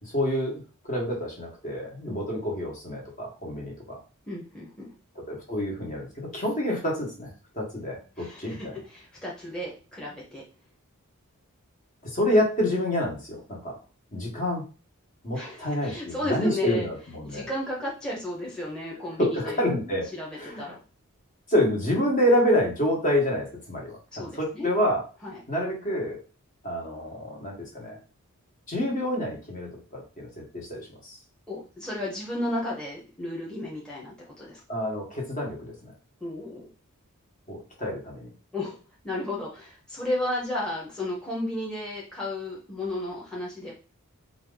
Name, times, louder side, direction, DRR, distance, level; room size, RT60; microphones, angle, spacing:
voice 1, 0.0-4.0 5.3-7.3 7.5-8.7 12.0-13.8 14.1-14.6 15.2-17.5 19.2-20.1 20.4-20.6 21.5-25.0 25.5-26.2 26.6-28.0 28.7-31.2 34.7-35.9 37.5-38.3, equal, 35° left, -2 dB, 1.5 m, -28 dB
voice 2, 4.3-4.9 8.2-10.4 15.3-16.9 17.2-20.8 24.1-24.7 25.2-25.4 31.5-34.6 36.2-36.7 38.5-38.8 39.0-43.7, left 1 dB, 5° left, -4 dB, 1.0 m, -33 dB
4.4 x 2.6 x 3.9 m, 0.35 s
head